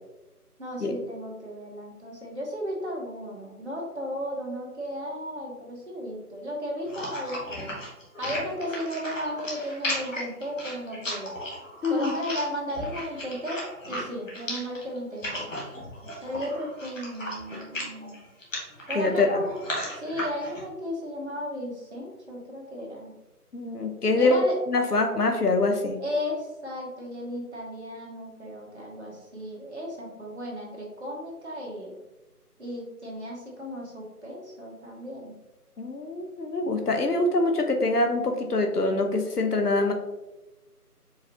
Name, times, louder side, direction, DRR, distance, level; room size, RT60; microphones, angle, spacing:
voice 1, 0.6-7.7 8.2-11.3 11.9-15.5 16.2-18.2 18.9-19.5 19.9-23.2 24.2-24.6 26.0-31.9 32.6-35.3, equal, 45° right, -2 dB, 1.2 m, -35 dB
sound 1, 6.9-20.6, equal, 55° left, 1.4 m, -35 dB
voice 2, 18.9-19.4 23.5-26.0 35.8-39.9, left 2 dB, 80° left, 5 dB, 0.9 m, -24 dB
4.7 x 3.3 x 2.8 m, 1.0 s
figure-of-eight pair, 165°, 46 cm